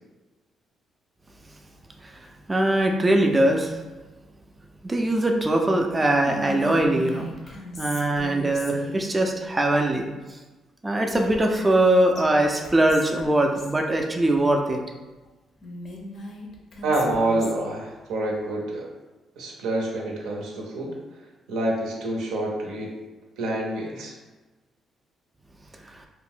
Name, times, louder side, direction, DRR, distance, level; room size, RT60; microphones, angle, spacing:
voice 1, 2.5-3.8 4.8-7.3 7.8-10.1 10.8-14.8, right 1 dB, 20° right, 2 dB, 0.3 m, -21 dB
Whispering, 6.2-9.1 11.1-11.9 12.1-12.2 12.6-13.8 15.6-17.7, left 1 dB, 50° left, 0.5 m, -38 dB
voice 2, 16.8-18.9 19.4-20.9 21.5-22.9 23.4-24.1, right 1 dB, 90° right, -1 dB, 0.6 m, -27 dB
2.5 x 2.0 x 3.5 m, 1.2 s
cardioid pair, 90°, 0 cm